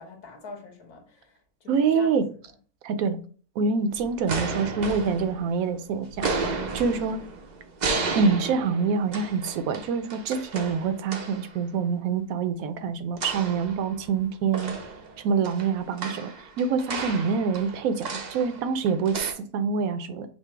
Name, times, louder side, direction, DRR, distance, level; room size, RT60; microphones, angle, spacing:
voice 1, 0.0-2.2, left 3 dB, 85° left, 1.6 m, -44 dB
voice 2, 1.7-2.2 2.8-3.2 3.6-7.2 8.1-14.8 15.2-16.3 16.6-19.3 19.5-20.3, right 5 dB, 75° right, 1.0 m, -26 dB
sound 1, 3.9-5.7 6.1-11.5 13.2-14.2 14.5-19.3, right 4 dB, 55° right, 0.5 m, -33 dB
5.8 x 2.0 x 4.3 m
omnidirectional pair, 1.6 m